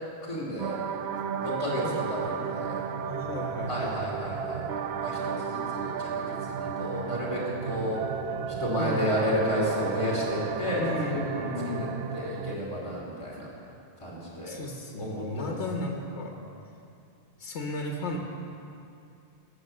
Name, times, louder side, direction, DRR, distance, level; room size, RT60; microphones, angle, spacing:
voice 1, 0.2-0.8 1.4-2.8 3.7-4.7 5.0-8.1 8.5-10.8 11.1-11.5 12.1-13.5 14.0-14.6 15.0-15.6, left 1 dB, 30° left, -5 dB, 2.9 m, -32 dB
sound 1, 0.6-12.6, right 7 dB, 70° right, 0.9 m, -33 dB
voice 2, 1.8-2.5 3.0-4.0 8.8-9.1 10.8-12.0 14.4-16.4 17.4-18.2, left 2 dB, 90° left, 1 dB, 1.4 m, -34 dB
20.0 x 7.5 x 6.6 m, 2.6 s
omnidirectional pair, 1.1 m